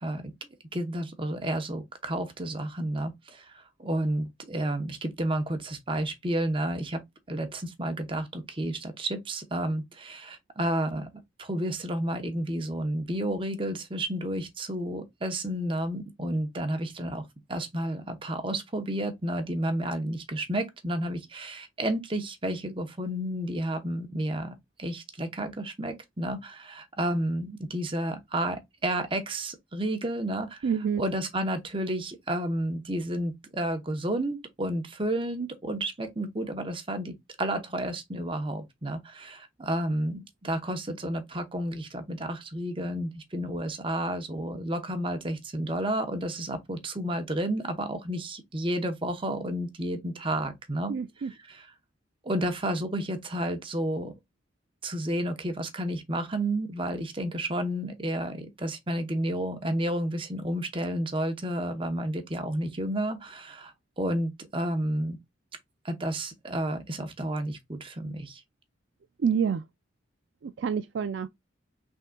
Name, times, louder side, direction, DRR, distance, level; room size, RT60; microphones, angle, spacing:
voice 1, 0.0-7.0 7.3-11.1 11.4-30.7 31.0-51.7 52.2-54.1 54.8-65.2 65.8-68.4, right 1 dB, 25° right, 0.9 m, -31 dB
voice 2, 30.6-31.0 50.9-51.3 69.2-69.6 70.4-71.3, right 6 dB, 65° right, 0.3 m, -27 dB
5.3 x 3.7 x 2.3 m
head